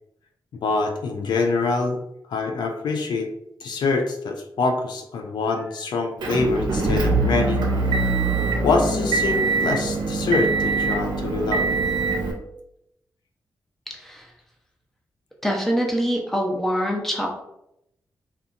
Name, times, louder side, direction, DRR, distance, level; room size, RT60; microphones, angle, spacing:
voice 1, 0.6-2.0 2.3-3.3 3.6-7.6 8.6-11.7, left 3 dB, 80° left, 3 dB, 0.4 m, -24 dB
Motor vehicle (road) / Engine, 6.2-12.3, right 3 dB, 80° right, 0.5 m, -23 dB
voice 2, 13.9-14.3 15.4-17.3, equal, 5° left, 0 dB, 0.6 m, -24 dB
2.8 x 2.3 x 2.4 m, 0.80 s
cardioid pair, 90°, 7 cm